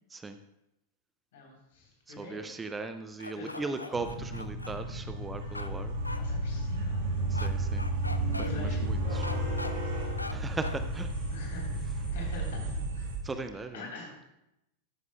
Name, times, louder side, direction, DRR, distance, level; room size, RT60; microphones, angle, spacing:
voice 1, 1.3-2.5 3.3-4.0 6.2-7.1 8.4-10.1 11.3-14.2, left 3 dB, 55° left, -1 dB, 3.4 m, -46 dB
voice 2, 2.1-5.9 7.3-7.9 8.3-9.3 10.3-11.1 13.2-13.9, right 3 dB, 15° right, 9 dB, 0.5 m, -38 dB
sound 1, 3.2-4.7 5.5-5.7 6.0-6.2 7.3-7.5 7.8-8.5 9.2-9.7 10.2-10.3 10.6-10.8, left 2 dB, 85° left, 0.4 m, -40 dB
sound 2, 3.9-13.2, right 1 dB, 55° right, 3.0 m, -32 dB
13.0 x 9.3 x 2.2 m, 0.86 s
figure-of-eight pair, 90°, 0 cm